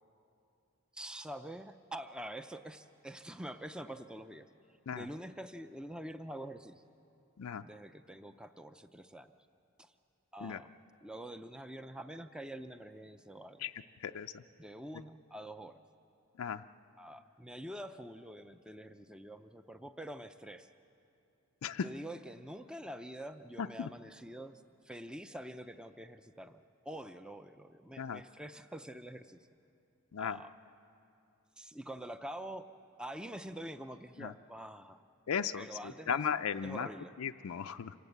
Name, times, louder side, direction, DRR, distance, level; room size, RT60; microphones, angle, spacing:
voice 1, 0.9-4.5 4.9-6.8 7.6-9.3 9.8-9.9 10.3-10.7 11.0-13.7 14.6-15.8 17.0-20.7 21.8-29.5 30.2-30.5 31.6-32.7 33.0-35.0 35.6-37.1, right 1 dB, 5° right, 9 dB, 0.4 m, -46 dB
voice 2, 14.0-14.4 16.4-16.6 21.6-21.9 23.6-23.9 28.0-28.2 30.1-30.4 34.2-34.3 35.3-35.7 36.1-36.9 37.2-37.9, left 7 dB, 85° left, 7 dB, 0.5 m, -36 dB
26.5 x 18.0 x 8.1 m, 2.7 s
head